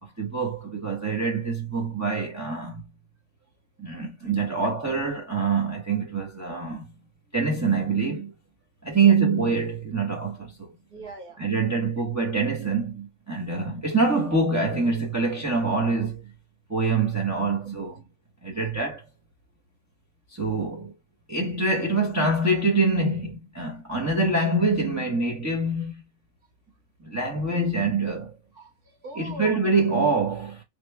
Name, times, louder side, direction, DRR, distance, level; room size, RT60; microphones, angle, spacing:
voice 1, 0.0-2.8 3.8-6.9 7.3-8.3 8.8-10.7 11.4-16.3 16.7-18.0 18.4-19.0 20.3-20.9 21.3-25.9 27.0-28.4 29.2-30.6, right 3 dB, 15° right, 0.8 m, -25 dB
voice 2, 8.9-9.2 10.9-11.5 17.8-18.0 18.5-18.8 28.5-29.7, right 3 dB, 85° right, 2.1 m, -42 dB
3.6 x 2.4 x 3.2 m
omnidirectional pair, 1.6 m